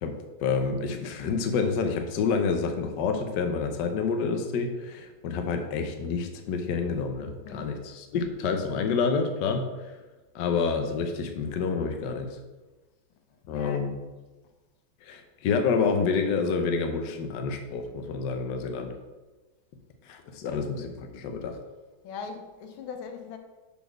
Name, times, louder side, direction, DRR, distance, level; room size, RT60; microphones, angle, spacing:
voice 1, 0.0-9.9 10.3-12.4 13.5-13.9 15.0-18.9 20.1-21.6, left 5 dB, 65° left, 1.3 m, -28 dB
voice 2, 7.4-7.8 13.3-13.9 22.0-23.4, left 5 dB, 90° left, 1.6 m, -40 dB
6.8 x 4.2 x 6.2 m
omnidirectional pair, 2.1 m